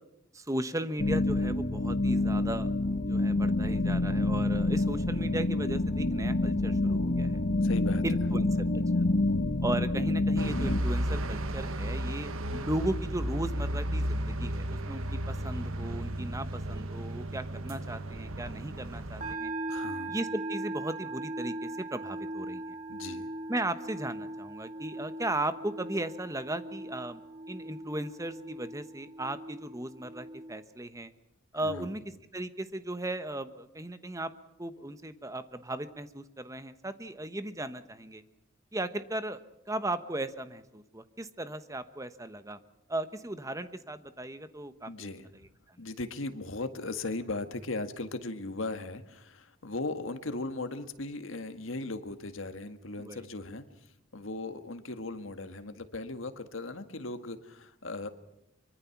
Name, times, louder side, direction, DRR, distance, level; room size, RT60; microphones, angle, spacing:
voice 1, 0.3-2.7 3.1-7.4 8.0-8.5 8.7-9.0 9.6-19.5 20.1-22.7 23.5-27.2 27.5-31.1 31.5-34.3 34.6-38.2 38.7-39.4 39.7-42.6 42.9-45.1 53.0-53.2, right 1 dB, 15° right, 11 dB, 1.1 m, -36 dB
sound 1, 1.0-10.8, left 2 dB, 45° left, 1.2 m, -27 dB
voice 2, 7.6-8.0 19.7-20.2 22.9-23.3 31.6-32.0 44.9-45.3 45.8-58.1, left 2 dB, 75° left, 9 dB, 1.8 m, -38 dB
sound 2, 10.4-19.3, right 1 dB, 85° right, 1.3 m, -34 dB
sound 3, 19.2-30.6, right 2 dB, 40° right, 3.0 m, -39 dB
24.0 x 24.0 x 5.9 m, 0.85 s
head